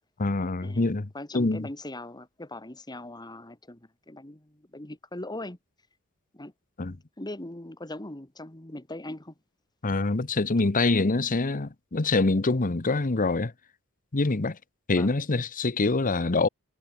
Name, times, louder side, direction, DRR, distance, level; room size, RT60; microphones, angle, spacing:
voice 1, 0.2-1.7 6.8-6.9 9.8-13.5 14.1-14.6 14.9-16.5, left 3 dB, 40° left, 0.9 m, -25 dB
voice 2, 1.1-5.6 6.3-6.5 7.2-9.3 14.9-15.1, left 1 dB, 20° left, 2.2 m, -40 dB
head